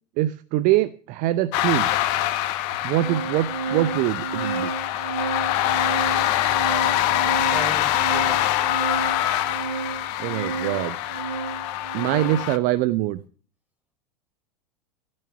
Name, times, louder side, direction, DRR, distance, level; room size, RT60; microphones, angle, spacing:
voice 1, 0.2-1.9 2.8-4.7 10.2-11.0 11.9-13.2, right 15 dB, 40° right, 14 dB, 0.7 m, -23 dB
Organ, 1.3-1.4 2.3-2.4 2.7-12.6, right 6 dB, 75° right, 1.7 m, -32 dB
sound 1, 1.5-12.6, left 13 dB, 50° left, 1.3 m, -24 dB
voice 2, 7.4-8.5, right 1 dB, 5° right, 6 dB, 4.2 m, -36 dB
17.0 x 6.4 x 8.0 m, 0.40 s
figure-of-eight pair, 90°, 20 cm